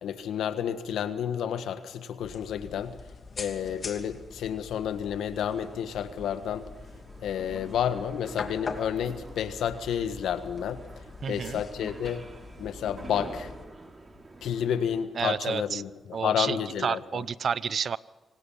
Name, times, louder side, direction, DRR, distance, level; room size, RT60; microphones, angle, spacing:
voice 1, 0.0-3.0 3.4-6.7 7.2-10.8 11.3-12.3 12.6-13.5 14.4-17.2, left 9 dB, 80° left, 10 dB, 1.5 m, -30 dB
sound 1, 2.2-13.7, left 4 dB, 50° left, 2.6 m, -43 dB
sound 2, 5.5-15.0, right 2 dB, 35° right, 4.9 m, -47 dB
voice 2, 11.2-11.6 15.1-15.8 16.1-18.0, right 6 dB, 60° right, 19 dB, 0.7 m, -30 dB
25.5 x 18.5 x 5.7 m, 1.2 s
supercardioid pair, 50°, 0 cm